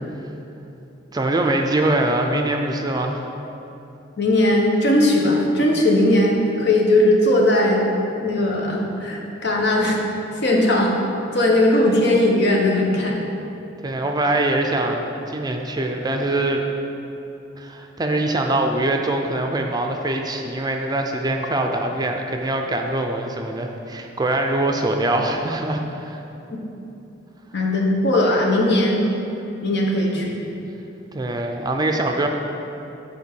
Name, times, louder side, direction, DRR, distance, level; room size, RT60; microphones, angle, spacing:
voice 1, 1.1-3.3 13.8-16.6 17.6-26.2 31.1-32.3, right 2 dB, 20° right, 3 dB, 0.5 m, -23 dB
voice 2, 4.2-7.9 8.2-10.0 10.4-10.9 11.3-13.2 26.5-26.6 27.5-29.0 29.6-30.4, left 1 dB, 60° left, -1 dB, 1.2 m, -18 dB
8.1 x 4.5 x 6.9 m, 2.9 s
head